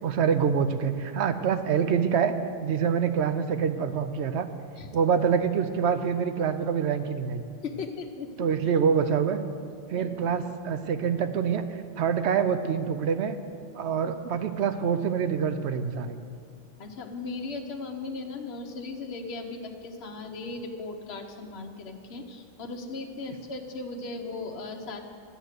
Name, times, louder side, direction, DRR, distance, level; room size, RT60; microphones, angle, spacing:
voice 1, 0.0-2.3 2.6-4.5 4.9-7.4 8.4-9.4 9.9-13.4 13.7-16.2, right 7 dB, 70° right, 10 dB, 0.9 m, -26 dB
voice 2, 7.6-8.5 10.0-10.1 16.8-25.0, left 3 dB, 60° left, 3 dB, 1.1 m, -37 dB
11.5 x 8.3 x 6.5 m, 2.4 s
omnidirectional pair, 1.2 m